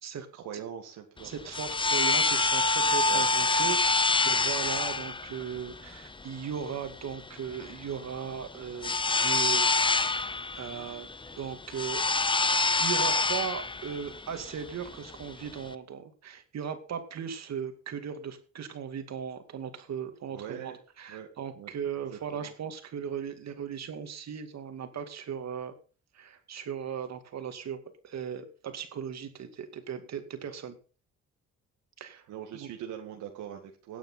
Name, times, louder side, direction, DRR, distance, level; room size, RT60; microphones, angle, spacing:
voice 1, 0.3-1.3 3.1-3.2 20.3-20.8 21.1-21.3 21.6-21.7 22.1-22.5 32.3-34.0, right 9 dB, 85° right, 3 dB, 1.9 m, -41 dB
sound 1, 1.2-15.7, left 3 dB, 15° left, 0.7 m, -27 dB
voice 2, 1.2-9.7 10.1-12.0 12.8-25.7 26.1-27.8 28.0-30.8 32.0-32.3 32.5-32.7, right 7 dB, 60° right, 7 dB, 2.3 m, -37 dB
17.0 x 8.9 x 4.2 m, 0.37 s
cardioid pair, 90°, 30 cm